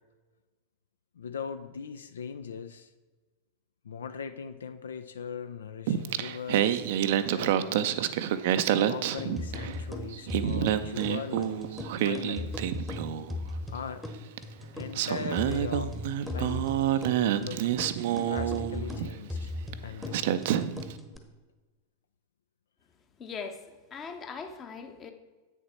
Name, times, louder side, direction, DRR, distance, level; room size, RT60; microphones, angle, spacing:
voice 1, 1.2-2.9 3.8-6.8 7.3-8.0 8.9-12.8 13.7-14.0 14.7-16.0 16.2-17.7 18.2-19.6 19.8-20.5, left 6 dB, 65° left, 11 dB, 0.4 m, -40 dB
Singing, 5.9-9.8 10.1-13.4 14.4-14.5 14.9-19.1 19.7-19.8 20.1-20.9, right 11 dB, 50° right, 0.4 m, -28 dB
sound 1, 9.2-21.2, left 2 dB, 5° left, 1.0 m, -38 dB
voice 2, 23.2-25.1, left 5 dB, 25° left, 7 dB, 1.0 m, -40 dB
8.5 x 6.6 x 4.3 m, 1.3 s
figure-of-eight pair, 90°, 0 cm